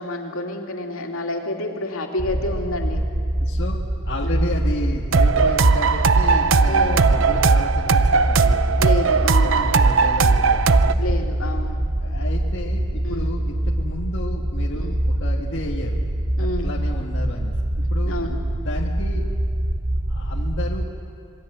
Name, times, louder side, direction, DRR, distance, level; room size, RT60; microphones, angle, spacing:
voice 1, 0.0-3.0 4.2-4.6 6.7-7.1 8.8-9.9 11.0-11.8 13.0-13.4 14.7-15.0 16.4-16.7 18.1-18.4, left 2 dB, 80° left, 1 dB, 2.9 m, -29 dB
sound 1, 2.2-20.9, right 1 dB, 40° right, 0.9 m, -24 dB
voice 2, 3.4-8.9 9.4-11.0 12.0-16.0 16.4-18.2 18.6-19.3 20.1-20.9, left 1 dB, 55° left, -2 dB, 1.8 m, -32 dB
sound 2, 5.1-10.9, right 4 dB, 65° right, 0.7 m, -18 dB
26.5 x 21.5 x 8.0 m, 2.6 s
head